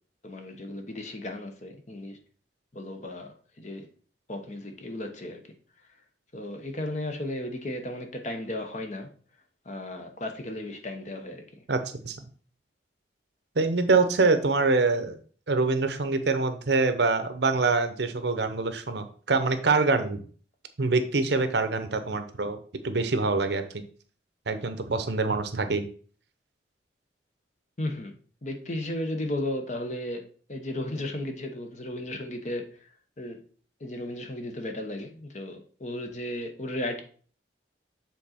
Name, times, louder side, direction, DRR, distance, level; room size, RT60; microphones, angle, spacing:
voice 1, 0.2-2.2 2.7-3.3 3.6-3.9 4.3-5.4 6.3-9.1 9.7-11.4 27.8-28.1 28.4-30.2 30.5-32.6 33.2-33.4 33.8-37.0, left 1 dB, 40° left, 5 dB, 0.9 m, -34 dB
voice 2, 13.6-15.2 15.5-20.2 20.8-22.6 22.8-23.6 24.5-25.9, right 3 dB, 60° right, 9 dB, 0.7 m, -25 dB
7.4 x 3.9 x 4.3 m, 0.43 s
head